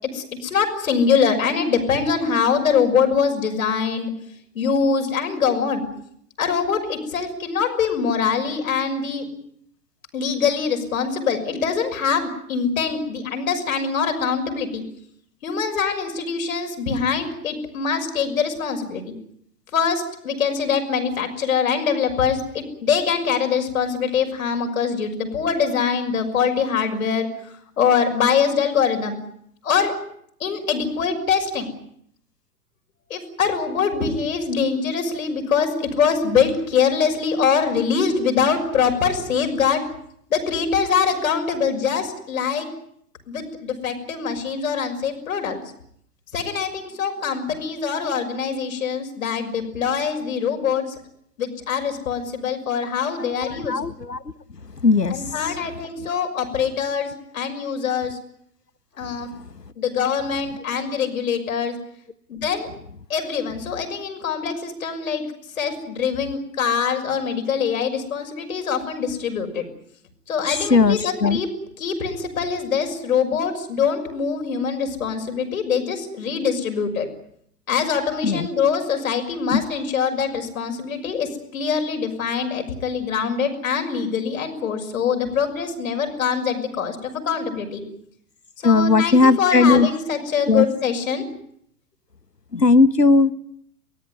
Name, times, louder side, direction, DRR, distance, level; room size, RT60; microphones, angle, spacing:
voice 1, 0.0-4.1 4.5-5.8 6.4-9.3 10.1-14.8 15.4-19.0 19.7-27.3 27.8-29.2 29.6-29.9 30.4-31.7 33.1-39.8 40.3-42.7 43.3-45.6 46.3-51.0 51.4-53.8 55.1-58.2 59.0-59.3 59.8-61.8 62.3-62.7 63.1-65.2 65.6-69.7 70.3-71.5 71.8-77.1 77.7-87.8 88.6-91.2, left 6 dB, 60° left, 5 dB, 6.2 m, -23 dB
voice 2, 53.4-54.2 54.8-55.6 70.5-71.4 78.2-78.5 79.5-79.6 88.6-89.9 90.5-90.7 92.5-93.3, left 3 dB, 85° left, 17 dB, 1.2 m, -17 dB
24.0 x 19.0 x 9.5 m, 0.69 s
figure-of-eight pair, 105°, 47 cm